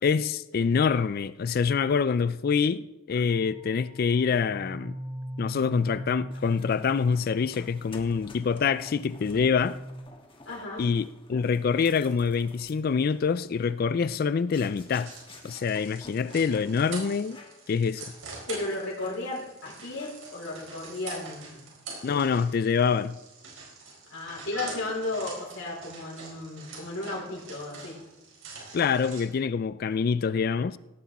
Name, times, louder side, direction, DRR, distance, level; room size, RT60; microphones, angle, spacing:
voice 1, 0.0-5.0 5.4-9.8 10.8-15.1 15.4-17.4 17.7-18.1 22.0-23.2 28.7-30.8, left 6 dB, 50° left, 0.3 m, -26 dB
sound 1, 3.3-10.0, equal, 20° right, 1.1 m, -40 dB
sound 2, 6.3-17.0 17.3-17.6 18.0-18.2 18.7-19.6 20.0-20.4, left 3 dB, 25° left, 1.4 m, -52 dB
voice 2, 10.4-10.8 18.5-21.7 24.1-28.0, left 2 dB, 85° left, 4.5 m, -34 dB
sound 3, 14.7-29.2, right 4 dB, 80° right, 4.5 m, -44 dB
17.5 x 8.3 x 4.1 m
head